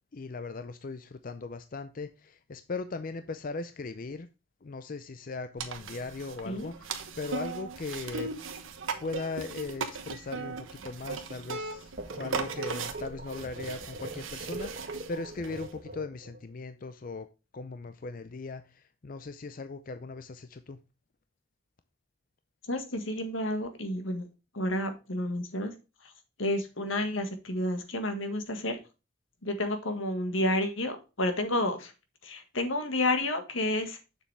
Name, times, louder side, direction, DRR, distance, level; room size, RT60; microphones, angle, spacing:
voice 1, 0.1-4.3 4.6-8.3 9.0-17.3 17.5-20.8, left 3 dB, 45° left, 0.5 m, -39 dB
sound 1, 5.6-15.7, right 4 dB, 90° right, 1.1 m, -38 dB
sound 2, 12.0-16.4, right 2 dB, 50° right, 1.3 m, -40 dB
voice 2, 22.7-24.2 24.5-25.7 26.4-28.8 29.4-31.9 32.2-34.0, left 1 dB, 85° left, 1.7 m, -30 dB
7.1 x 6.9 x 3.3 m
head